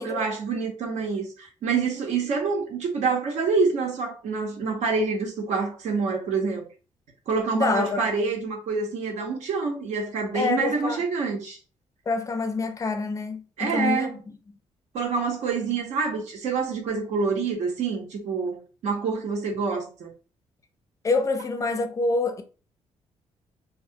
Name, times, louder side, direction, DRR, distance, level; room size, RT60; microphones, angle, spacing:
voice 1, 0.0-6.7 7.3-11.6 13.6-14.2 14.9-20.1, right 4 dB, 75° right, 0.8 m, -27 dB
voice 2, 7.5-8.1 10.3-11.0 12.1-14.2 21.0-22.4, left 3 dB, 25° left, 0.4 m, -26 dB
2.3 x 2.1 x 2.7 m
cardioid pair, 100°, 12 cm